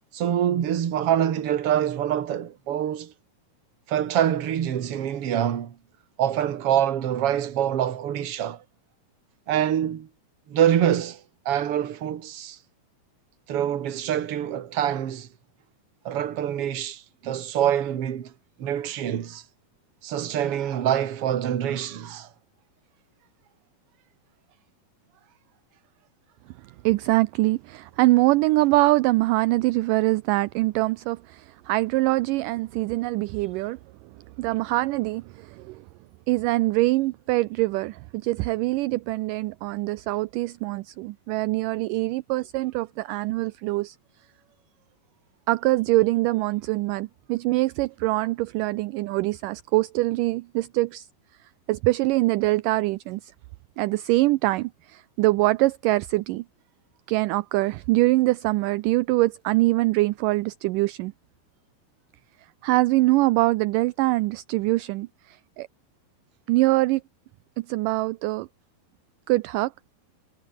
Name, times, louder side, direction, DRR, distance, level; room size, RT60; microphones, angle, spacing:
voice 1, 0.1-3.1 3.9-5.8 6.2-8.6 9.5-10.1 10.5-11.2 11.5-12.6 13.5-15.3 16.0-18.3 18.6-19.4 20.0-22.3, right 10 dB, 45° right, 2.2 m, -25 dB
voice 2, 26.8-33.8 34.4-35.9 36.3-44.0 45.5-51.1 51.7-53.3 53.8-56.5 57.1-61.1 62.6-65.7 66.5-67.0 67.6-68.5 69.3-69.7, right 20 dB, 80° right, 1.9 m, -23 dB
omnidirectional pair, 4.3 m